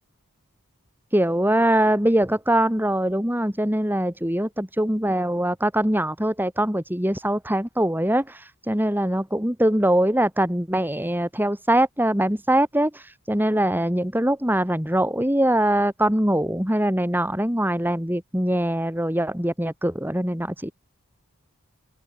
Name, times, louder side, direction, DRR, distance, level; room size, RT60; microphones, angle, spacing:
voice 1, 1.1-20.7, right 1 dB, 10° right, 3.5 m, -22 dB
open air
head